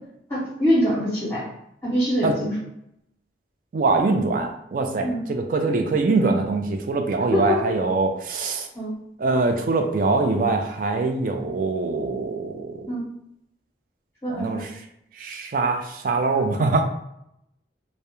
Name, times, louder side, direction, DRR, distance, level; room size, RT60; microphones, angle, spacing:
voice 1, 0.3-1.5 1.8-2.5 5.0-5.2 7.3-7.6 8.7-8.9 12.9-13.0 14.2-14.7, equal, 20° left, -10 dB, 0.7 m, -24 dB
voice 2, 3.7-8.7 9.2-12.8 14.3-14.7 15.2-16.8, right 3 dB, 50° right, 5 dB, 0.3 m, -23 dB
2.3 x 2.0 x 2.9 m, 0.78 s
head